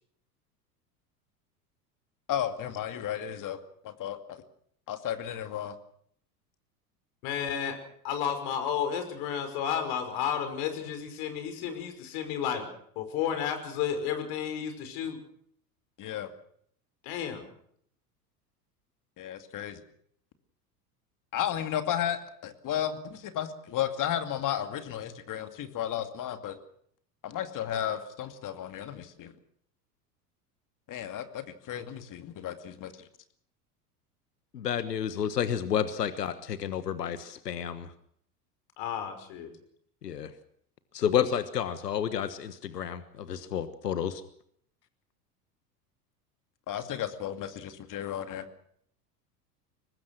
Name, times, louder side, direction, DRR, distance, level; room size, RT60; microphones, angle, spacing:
voice 1, 2.3-3.6 3.8-4.4 4.9-5.7 16.0-16.3 19.2-19.8 21.3-26.6 27.2-29.3 30.9-32.9 46.7-48.5, left 10 dB, 40° left, 9 dB, 2.4 m, -33 dB
voice 2, 7.2-7.8 8.0-12.7 13.0-15.2 17.0-17.4 38.8-39.5, left 8 dB, 60° left, 7 dB, 5.7 m, -32 dB
voice 3, 34.5-37.9 40.0-40.3 40.9-44.2, left 9 dB, 85° left, 13 dB, 1.4 m, -30 dB
23.5 x 20.0 x 6.1 m, 0.66 s
hypercardioid pair, 85°, 47 cm